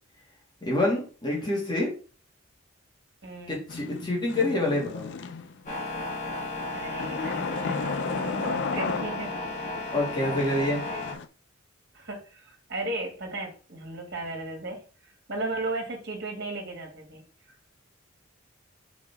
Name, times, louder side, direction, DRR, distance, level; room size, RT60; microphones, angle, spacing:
voice 1, 0.6-1.9 3.5-5.1 9.9-10.9, left 1 dB, 20° left, -3 dB, 2.0 m, -27 dB
voice 2, 3.2-3.6 6.7-9.3 10.9-11.0 11.9-17.7, right 2 dB, 55° right, 0 dB, 1.9 m, -36 dB
sound 1, 3.7-5.7 7.0-9.6 10.2-11.3, left 4 dB, 60° left, 0.4 m, -34 dB
sound 2, 5.7-11.1, left 2 dB, 35° left, 1.6 m, -34 dB
5.7 x 5.1 x 3.5 m, 0.38 s
head